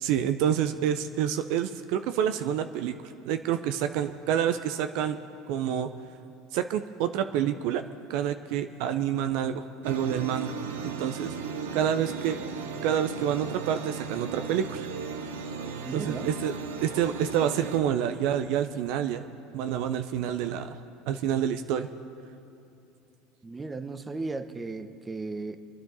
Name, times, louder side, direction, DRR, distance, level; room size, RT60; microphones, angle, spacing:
voice 1, 0.0-5.2 5.5-5.9 6.5-7.8 8.1-10.5 10.8-11.3 11.7-12.4 12.8-14.9 15.9-16.5 16.8-19.2 19.5-20.8 21.1-21.9, right 9 dB, 65° right, 9 dB, 0.5 m, -28 dB
sound 1, 9.8-17.8, right 5 dB, 85° right, 1.0 m, -36 dB
voice 2, 15.8-16.4 23.4-25.6, right 3 dB, 20° right, 10 dB, 0.9 m, -35 dB
25.0 x 10.0 x 4.1 m, 2.7 s
hypercardioid pair, 90°, 0 cm